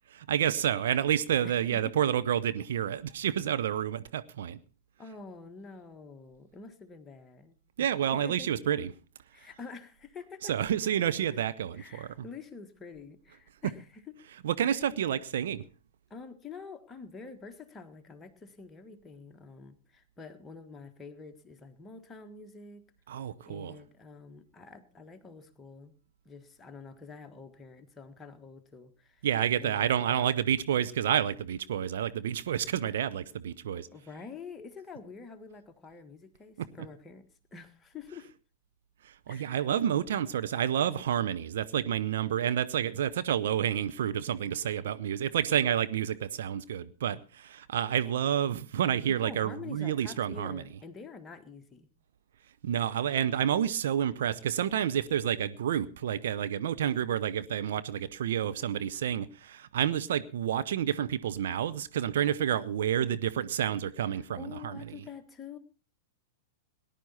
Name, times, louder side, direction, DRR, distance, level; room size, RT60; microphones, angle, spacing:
voice 1, 0.1-4.6 7.8-8.9 10.5-12.1 14.4-15.6 23.1-23.7 29.2-33.9 39.0-50.6 52.6-64.8, right 10 dB, 55° right, 0.7 m, -29 dB
voice 2, 1.4-2.0 5.0-7.9 8.2-8.5 9.3-10.5 11.7-14.0 14.6-14.8 16.1-22.8 23.5-25.9 26.2-29.3 29.6-30.4 33.7-37.3 37.5-38.3 39.3-39.7 49.1-51.9 64.2-65.6, left 5 dB, 15° left, 1.6 m, -47 dB
19.0 x 11.0 x 4.2 m
figure-of-eight pair, 100°, 0 cm